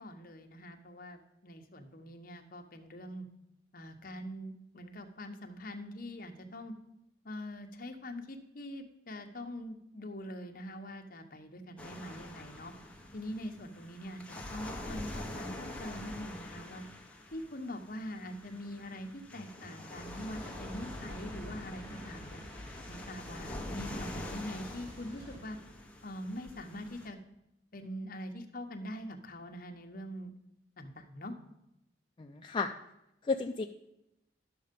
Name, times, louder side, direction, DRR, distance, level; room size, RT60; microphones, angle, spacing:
voice 1, 0.0-3.3 3.7-6.7 7.2-12.7 13.1-16.8 17.3-22.4 22.9-25.6 26.0-27.2 27.7-30.3 30.8-31.3, equal, 50° left, 4 dB, 1.0 m, -43 dB
sound 1, 11.8-27.1, left 1 dB, 5° left, 1.2 m, -45 dB
sound 2, 19.9-25.4, equal, 25° right, 2.2 m, -48 dB
voice 2, 32.2-32.7 33.2-33.7, left 4 dB, 25° left, 3 dB, 0.4 m, -32 dB
11.5 x 6.6 x 5.3 m, 0.85 s
head